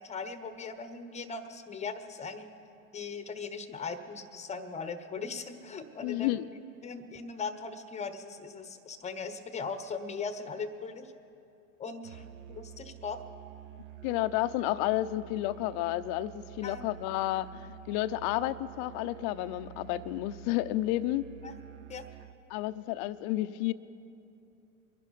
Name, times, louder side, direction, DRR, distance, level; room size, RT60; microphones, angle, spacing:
voice 1, 0.0-2.5 2.9-6.4 6.8-11.1 11.8-13.2 16.6-16.9 21.4-21.5 21.9-22.1, left 4 dB, 15° left, 10 dB, 0.9 m, -39 dB
voice 2, 6.0-6.5 14.0-21.2 22.5-23.7, left 15 dB, 45° left, 14 dB, 0.6 m, -31 dB
Musical instrument, 12.0-22.4, right 10 dB, 55° right, 0.6 m, -49 dB
23.5 x 11.0 x 4.1 m, 2.7 s
hypercardioid pair, 100°, 45 cm